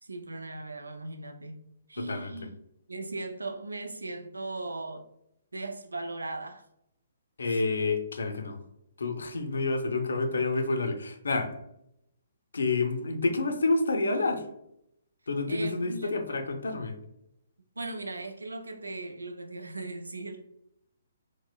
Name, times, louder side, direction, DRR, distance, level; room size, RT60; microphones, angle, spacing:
voice 1, 0.0-1.6 1.9-2.6 2.9-5.0 5.5-6.6 7.5-7.6 15.5-16.2 17.8-20.4, right 2 dB, 90° right, 0.3 m, -38 dB
voice 2, 2.0-2.3 7.4-8.6 9.0-11.5 12.5-14.4 15.3-16.9, left 3 dB, 75° left, 0.5 m, -28 dB
4.3 x 2.0 x 2.2 m
figure-of-eight pair, 135°, 0 cm